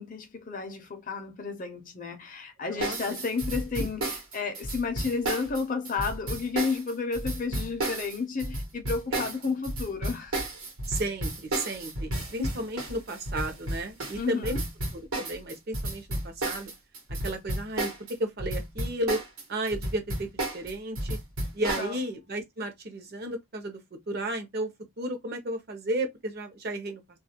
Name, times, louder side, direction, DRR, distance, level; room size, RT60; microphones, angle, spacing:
voice 1, 0.0-10.4 14.1-14.6 21.8-22.0, left 4 dB, 40° left, 0.5 m, -32 dB
voice 2, 2.6-3.0 3.7-3.9 9.1-9.3 10.9-14.6 14.9-16.7 17.2-17.9 18.2-19.2 19.5-21.2 21.5-23.8 24.1-24.7 25.0-27.0, right 1 dB, 45° right, 0.6 m, -33 dB
sound 1, 2.8-18.1 18.4-21.9, right 1 dB, 80° right, 1.0 m, -32 dB
2.3 x 2.1 x 2.8 m
head